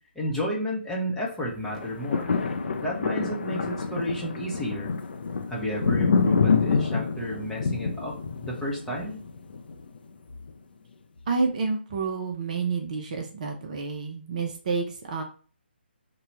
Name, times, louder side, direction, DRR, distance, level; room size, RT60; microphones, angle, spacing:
voice 1, 0.1-2.3 2.8-4.9 5.5-9.2, equal, 5° left, -4 dB, 0.9 m, -32 dB
sound 1, 1.7-10.0 10.5-10.6, left 5 dB, 55° left, 0.5 m, -27 dB
voice 2, 11.3-15.2, right 4 dB, 40° right, 3 dB, 0.7 m, -29 dB
3.8 x 2.3 x 4.3 m, 0.39 s
figure-of-eight pair, 145°, 6 cm